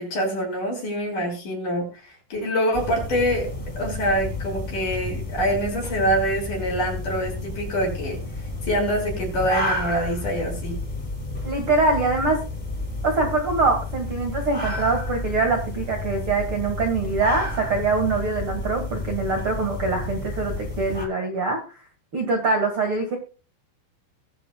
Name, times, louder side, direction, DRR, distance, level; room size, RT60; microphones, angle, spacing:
voice 1, 0.0-3.5 3.8-8.2 8.6-10.8, equal, 45° left, 0 dB, 6.6 m, -25 dB
sound 1, 2.7-21.1, left 2 dB, 5° left, 3.5 m, -31 dB
voice 2, 11.4-12.4 13.0-21.6 22.1-23.2, right 3 dB, 45° right, 3 dB, 2.0 m, -24 dB
22.0 x 7.5 x 2.3 m, 0.34 s
omnidirectional pair, 5.3 m